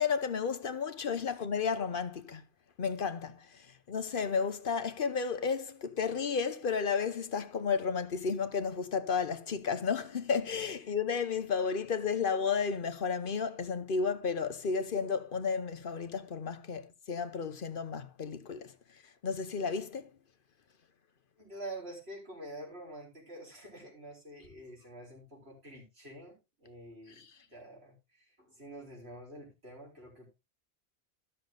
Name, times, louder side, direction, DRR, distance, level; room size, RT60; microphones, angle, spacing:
voice 1, 0.0-2.4 2.8-3.5 3.9-18.7 19.2-20.1 27.2-27.3, left 6 dB, 60° left, 1.0 m, -32 dB
voice 2, 21.4-30.3, right 1 dB, 80° right, 4.6 m, -47 dB
13.0 x 6.7 x 3.7 m
omnidirectional pair, 1.0 m